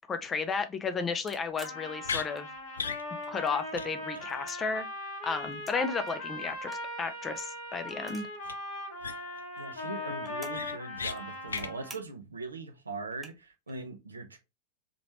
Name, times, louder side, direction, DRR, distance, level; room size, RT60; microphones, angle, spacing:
voice 1, 0.1-2.5 3.3-4.9 5.2-6.7 7.0-8.3, left 5 dB, 20° left, 0.7 m, -33 dB
sound 1, 1.3-2.7 3.0-3.8 4.2-5.8 6.1-8.5 8.7-8.8 9.0-10.7 11.0-11.6 11.9-12.3 12.7-12.8 13.1-13.7, right 3 dB, 10° right, 1.4 m, -52 dB
Trumpet, 1.5-12.0, left 1 dB, 55° left, 1.8 m, -39 dB
sound 2, 2.0-2.3 2.8-3.0 3.4-3.5 3.7-3.9 4.1-4.3 8.4-8.5 9.0-9.4 9.8-9.9 10.2-11.2 11.5-11.7, left 5 dB, 70° left, 0.4 m, -35 dB
voice 2, 9.6-14.4, right 3 dB, 80° right, 0.8 m, -40 dB
5.1 x 3.2 x 2.9 m
figure-of-eight pair, 90°, 0 cm